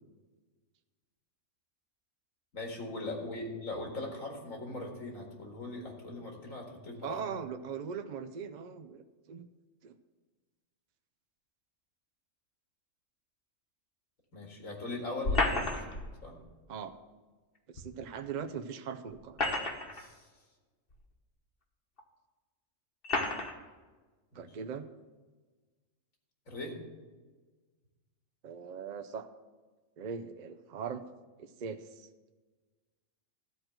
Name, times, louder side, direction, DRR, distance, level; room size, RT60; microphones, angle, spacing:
voice 1, 2.5-7.3 14.3-16.4 19.9-20.3 24.3-24.5 26.5-26.8, left 2 dB, 80° left, 0 dB, 2.3 m, -40 dB
voice 2, 7.0-9.5 9.8-9.9 16.7-16.9 17.7-19.4 24.3-24.9 28.4-29.3 30.0-31.0 31.4-32.1, right 6 dB, 60° right, 8 dB, 0.4 m, -40 dB
sound 1, 15.2-16.1 17.8-17.9 19.1-20.0 20.9-21.0 22.0-22.1 23.0-23.5, left 2 dB, 45° left, 1.3 m, -31 dB
13.5 x 4.5 x 7.8 m, 1.3 s
omnidirectional pair, 1.4 m